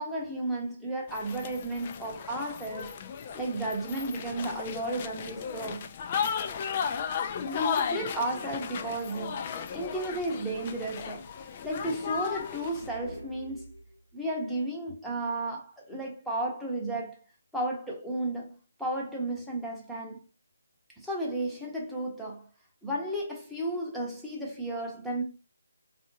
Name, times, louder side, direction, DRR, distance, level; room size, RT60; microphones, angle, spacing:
voice 1, 0.0-2.9 3.3-5.9 7.5-13.6 14.1-17.1 17.5-20.2 21.0-22.5 22.8-25.2, right 1 dB, ahead, 0.8 m, -33 dB
sound 1, 1.1-12.9, left 7 dB, 30° left, 0.3 m, -35 dB
sound 2, 12.6-14.2, equal, 85° left, 1.0 m, -45 dB
3.5 x 2.6 x 3.8 m
figure-of-eight pair, 150°, 0 cm